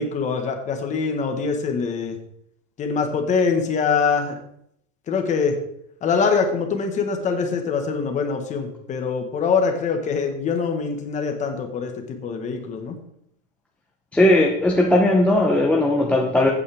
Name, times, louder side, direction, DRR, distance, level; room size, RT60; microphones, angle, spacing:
voice 1, 0.0-2.2 2.8-4.4 5.1-5.6 6.0-11.9 12.2-13.0, left 5 dB, 20° left, 4 dB, 1.3 m, -23 dB
voice 2, 14.1-16.5, left 1 dB, 5° left, -2 dB, 0.6 m, -18 dB
15.0 x 8.8 x 3.5 m, 0.71 s
supercardioid pair, 170°, 37 cm